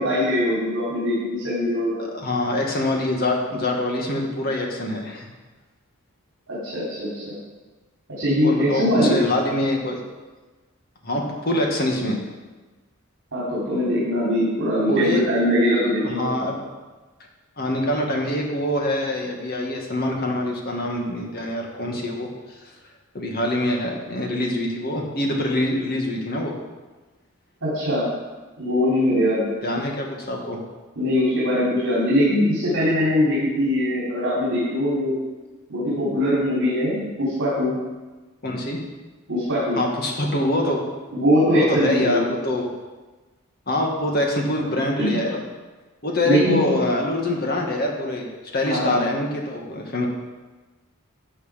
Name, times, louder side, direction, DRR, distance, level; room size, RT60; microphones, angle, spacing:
voice 1, 0.0-2.1 6.5-7.4 8.2-9.3 13.3-16.3 27.6-28.0 28.6-29.5 31.0-35.2 35.7-37.8 39.3-39.8 41.1-42.3 45.0-45.2 46.2-46.6 48.7-49.0, equal, 60° right, -8 dB, 3.9 m, -21 dB
voice 2, 2.0-5.3 8.4-10.0 11.0-12.2 14.9-15.2 16.0-16.6 17.6-22.3 23.1-26.5 29.6-30.6 38.4-38.8 39.8-40.9 41.5-42.7 43.7-45.3 46.0-48.3 48.5-50.1, left 1 dB, 45° left, 0 dB, 2.0 m, -24 dB
13.5 x 8.0 x 5.3 m, 1.2 s
head